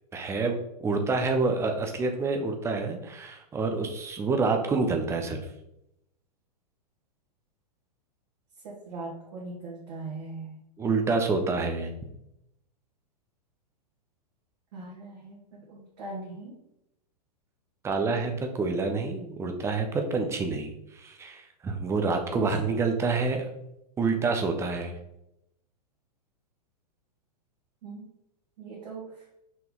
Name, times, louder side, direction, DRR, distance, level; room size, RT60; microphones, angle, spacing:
voice 1, 0.1-5.4 10.8-11.9 17.8-23.5 24.0-25.0, right 4 dB, 10° right, 5 dB, 0.8 m, -27 dB
voice 2, 8.6-10.6 14.7-15.4 15.7-16.5 22.3-22.5 27.8-28.1 28.6-29.3, right 3 dB, 45° right, -5 dB, 1.9 m, -40 dB
6.0 x 4.4 x 4.0 m, 0.83 s
figure-of-eight pair, 100°, 21 cm